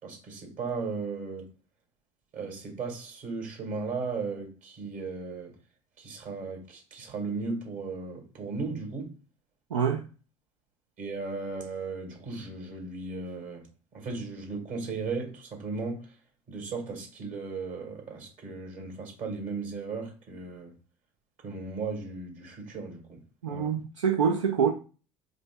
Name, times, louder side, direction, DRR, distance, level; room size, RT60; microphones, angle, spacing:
voice 1, 0.0-1.5 2.3-5.5 6.0-9.1 11.0-13.7 13.9-16.1 16.5-20.7 21.4-23.2 23.5-23.7, right 4 dB, 55° right, 2.1 m, -36 dB
voice 2, 9.7-10.0 23.4-24.7, right 7 dB, 85° right, 0.5 m, -25 dB
5.0 x 3.9 x 2.3 m
hypercardioid pair, 65°, 15 cm